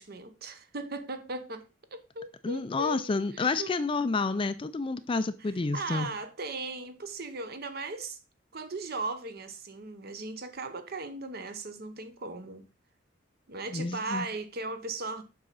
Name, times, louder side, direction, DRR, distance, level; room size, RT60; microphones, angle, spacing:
voice 1, 0.0-1.7 1.9-3.8 5.4-8.2 8.5-12.6 13.5-15.2, right 3 dB, 50° right, 0.9 m, -38 dB
voice 2, 2.4-6.1 13.7-14.3, left 3 dB, 25° left, 0.4 m, -29 dB
7.7 x 5.6 x 4.0 m
head